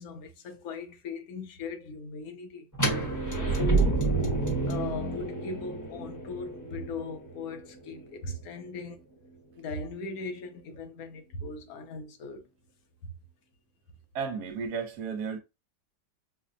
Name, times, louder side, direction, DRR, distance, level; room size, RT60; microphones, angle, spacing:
voice 1, 0.0-2.6 3.4-4.0 4.7-9.0 9.6-12.4, left 3 dB, 65° left, 1.0 m, -38 dB
sound 1, 2.7-8.6, right 3 dB, 15° left, 0.7 m, -29 dB
voice 2, 14.1-15.4, right 6 dB, 70° right, 1.3 m, -34 dB
5.4 x 2.1 x 2.6 m
omnidirectional pair, 1.9 m